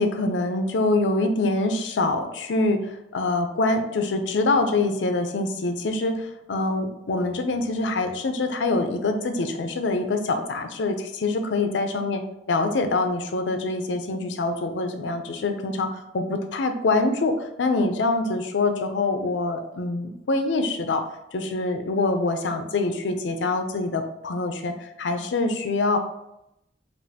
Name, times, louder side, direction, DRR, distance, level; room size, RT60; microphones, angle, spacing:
voice 1, 0.0-12.2 12.5-21.1 21.3-26.0, left 2 dB, 80° left, 6 dB, 0.5 m, -25 dB
5.2 x 2.4 x 2.8 m, 0.84 s
head